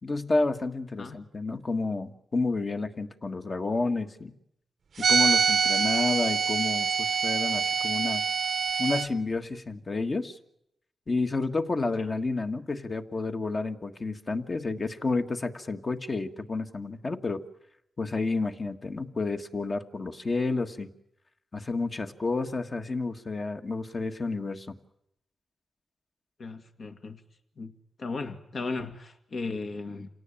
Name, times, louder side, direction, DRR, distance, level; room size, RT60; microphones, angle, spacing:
voice 1, 0.0-4.3 5.1-8.2 8.8-10.4 11.1-17.4 18.0-20.9 21.5-24.7, left 3 dB, 35° left, 1.6 m, -30 dB
sound 1, 5.0-9.1, right 6 dB, 70° right, 0.9 m, -25 dB
voice 2, 26.4-27.2 27.6-27.7 28.0-30.1, left 3 dB, 60° left, 2.0 m, -36 dB
27.5 x 17.5 x 8.9 m
cardioid pair, 90°, 0 cm